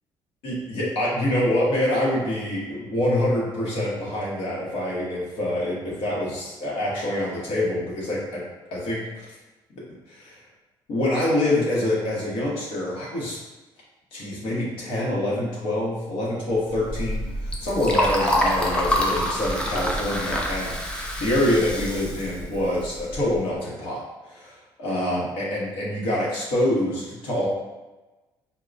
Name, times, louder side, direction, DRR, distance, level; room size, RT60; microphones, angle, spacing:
voice 1, 0.4-8.4 8.7-9.2 10.1-10.3 10.9-13.4 14.1-27.5, left 1 dB, 80° left, -6 dB, 1.1 m, -26 dB
Liquid, 16.7-23.4, equal, 10° left, 0.4 m, -26 dB
4.5 x 2.1 x 2.5 m, 1.1 s
cardioid pair, 155°, 9 cm